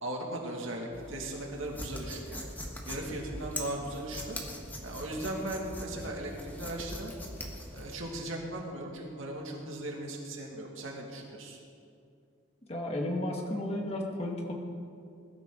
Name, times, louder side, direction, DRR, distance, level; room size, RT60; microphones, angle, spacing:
voice 1, 0.0-2.5 2.9-4.4 4.8-7.1 7.7-11.6, right 1 dB, 80° right, -1 dB, 2.3 m, -38 dB
sound 1, 0.9-7.9, left 1 dB, 10° left, 1.4 m, -42 dB
voice 2, 12.7-14.5, left 1 dB, 30° left, 0 dB, 1.9 m, -33 dB
21.0 x 13.5 x 3.9 m, 2.5 s
head